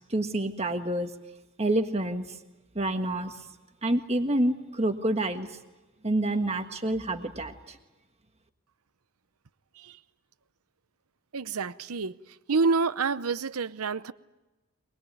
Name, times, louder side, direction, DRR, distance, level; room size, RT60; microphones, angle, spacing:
voice 1, 0.1-1.1 1.6-2.3 2.7-3.3 3.8-5.5 6.0-7.8, right 1 dB, 30° right, 1.6 m, -27 dB
voice 2, 11.3-12.1 12.5-14.1, right 4 dB, 90° right, 0.8 m, -28 dB
23.5 x 21.0 x 9.3 m
head